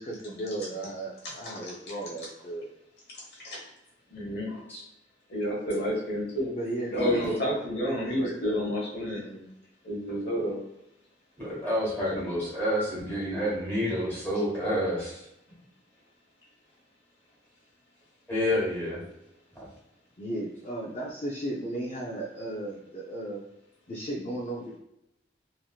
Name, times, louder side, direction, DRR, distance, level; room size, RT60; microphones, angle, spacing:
voice 1, 0.0-2.7 6.5-9.5 20.2-23.4 23.9-24.8, right 1 dB, 35° left, -3 dB, 0.4 m, -36 dB
voice 2, 4.1-4.6 5.3-6.5 7.0-9.2 9.8-10.6, equal, 60° left, -4 dB, 1.1 m, -30 dB
voice 3, 6.9-7.2 11.4-15.2 18.3-19.0, equal, 10° left, -9 dB, 1.3 m, -29 dB
3.0 x 2.6 x 2.3 m, 0.87 s
head